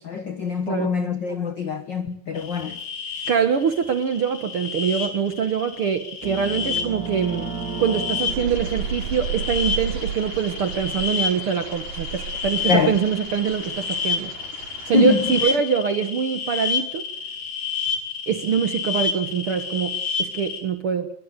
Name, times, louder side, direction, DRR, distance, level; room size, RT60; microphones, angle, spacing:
voice 1, 0.0-2.8 12.7-12.9 14.9-15.5, left 5 dB, 65° left, 1.1 m, -24 dB
sound 1, 2.4-20.6, left 6 dB, 80° left, 5.1 m, -30 dB
voice 2, 3.3-7.5 7.8-14.3 14.8-17.0 18.3-21.1, right 7 dB, 60° right, 1.5 m, -24 dB
sound 2, 6.2-10.2, right 5 dB, 40° right, 1.6 m, -34 dB
sound 3, 8.3-15.6, right 7 dB, 75° right, 4.0 m, -34 dB
22.0 x 20.0 x 8.1 m
omnidirectional pair, 4.0 m